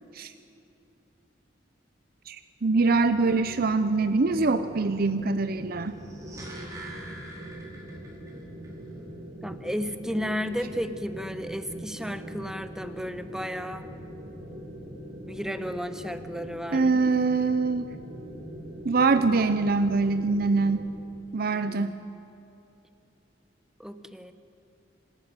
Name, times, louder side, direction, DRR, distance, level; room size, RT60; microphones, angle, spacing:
voice 1, 2.3-6.0 16.7-17.9 18.8-20.9 21.3-22.0, right 3 dB, 55° right, 10 dB, 0.7 m, -24 dB
sound 1, 2.7-20.8, equal, 40° right, 4.6 m, -42 dB
sound 2, 5.9-8.3 8.6-8.7, right 1 dB, 20° right, 4.6 m, -44 dB
voice 2, 6.4-7.1 9.4-13.9 15.3-17.0 21.5-22.1 23.8-24.3, equal, 5° right, 10 dB, 1.0 m, -34 dB
26.0 x 13.0 x 9.2 m, 2.8 s
head